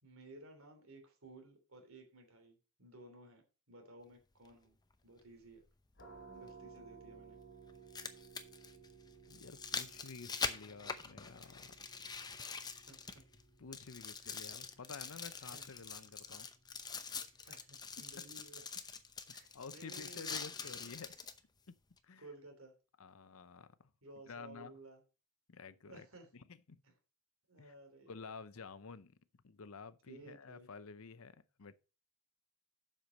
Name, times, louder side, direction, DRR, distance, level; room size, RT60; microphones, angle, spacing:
voice 1, 0.0-4.8 5.0-5.6 6.3-7.4 12.9-13.1 14.2-14.5 15.4-15.7 17.4-18.6 19.3-20.4 22.2-22.7 24.0-25.0 25.9-26.3 26.8-26.9 27.5-28.1 30.1-30.7, right 2 dB, 65° right, 3.1 m, -56 dB
sound 1, 4.4-4.5 6.5-6.6 7.7-13.4 13.7-21.4 22.0-22.1, left 5 dB, 20° left, 0.7 m, -44 dB
sound 2, 5.9-17.5, right 5 dB, 50° left, 4.2 m, -59 dB
voice 2, 9.3-11.8 13.6-16.5 19.5-21.2 21.7-21.8 22.0-22.2 23.0-23.8 24.3-24.7 25.5-26.1 26.3-26.8 27.6-27.7 28.1-29.2 29.4-31.8, left 5 dB, 65° left, 0.7 m, -51 dB
7.5 x 6.7 x 5.2 m
head